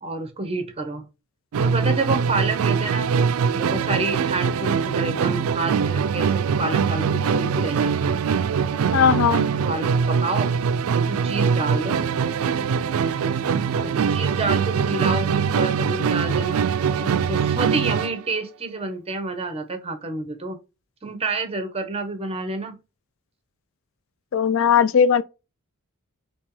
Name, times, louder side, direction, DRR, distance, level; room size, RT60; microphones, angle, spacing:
voice 1, 0.0-1.1 1.5-8.2 8.9-9.1 9.7-10.5 10.9-12.0 13.7-16.6 17.0-20.6 21.0-22.8, right 3 dB, 30° right, 1.0 m, -29 dB
Musical instrument, 1.5-18.2, right 6 dB, 75° right, 0.4 m, -22 dB
voice 2, 8.9-9.5 24.3-25.2, left 7 dB, 65° left, 0.4 m, -18 dB
5.4 x 2.9 x 3.2 m
head